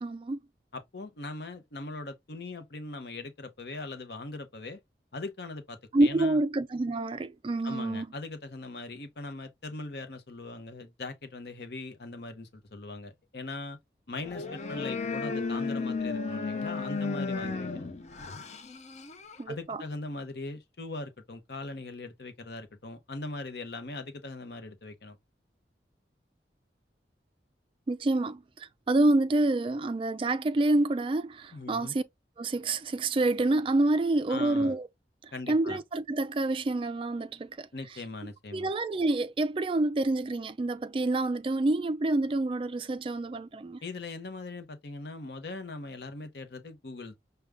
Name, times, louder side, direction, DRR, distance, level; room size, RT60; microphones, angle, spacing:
voice 1, 0.0-0.4 5.9-8.1 19.4-19.8 27.9-32.0 32.4-34.9 35.2-37.7 38.5-43.8, right 2 dB, 30° right, 0.3 m, -27 dB
voice 2, 0.7-4.8 5.1-6.4 7.6-13.8 14.1-17.9 19.5-25.2 31.5-31.9 34.3-34.8 35.3-35.8 37.7-38.7 43.8-47.2, left 2 dB, 65° left, 0.8 m, -40 dB
sound 1, 14.2-19.4, left 4 dB, 40° left, 0.5 m, -34 dB
5.0 x 2.2 x 3.4 m
head